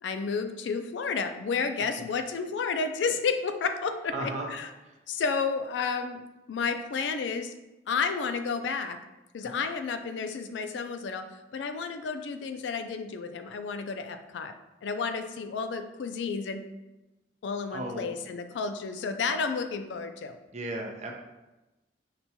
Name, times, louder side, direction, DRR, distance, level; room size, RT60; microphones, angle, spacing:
voice 1, 0.0-4.7 5.1-6.2 6.5-7.5 7.9-9.0 9.3-11.2 11.5-14.5 14.8-16.6 17.4-20.4, left 5 dB, 80° left, 8 dB, 0.3 m, -31 dB
voice 2, 4.1-4.5 4.8-5.0 17.7-18.1 20.5-21.2, right 2 dB, 40° right, 1 dB, 0.5 m, -35 dB
5.9 x 2.2 x 2.8 m, 1.0 s
head